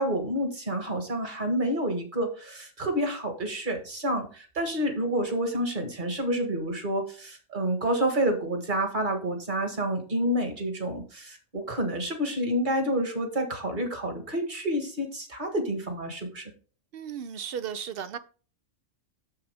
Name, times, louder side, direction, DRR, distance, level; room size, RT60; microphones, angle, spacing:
voice 1, 0.0-16.5, right 1 dB, 40° right, 1.7 m, -29 dB
voice 2, 16.9-18.2, right 8 dB, 60° right, 0.7 m, -35 dB
7.7 x 7.1 x 3.4 m
omnidirectional pair, 1.3 m